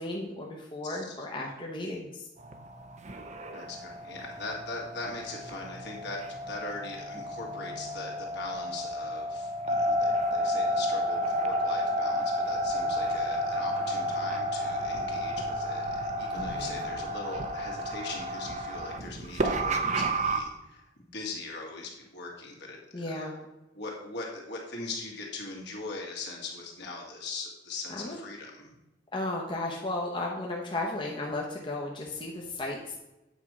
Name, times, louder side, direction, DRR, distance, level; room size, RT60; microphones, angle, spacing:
voice 1, 0.0-2.3 16.3-16.9 22.9-23.4 28.0-28.2 29.1-33.0, left 2 dB, 25° left, -2 dB, 0.9 m, -34 dB
voice 2, 0.8-1.2 3.5-23.4 23.7-28.7, left 3 dB, 65° left, -1 dB, 2.0 m, -41 dB
sound 1, 2.4-20.4, equal, 40° right, 0.7 m, -31 dB
8.3 x 4.4 x 6.0 m, 0.96 s
head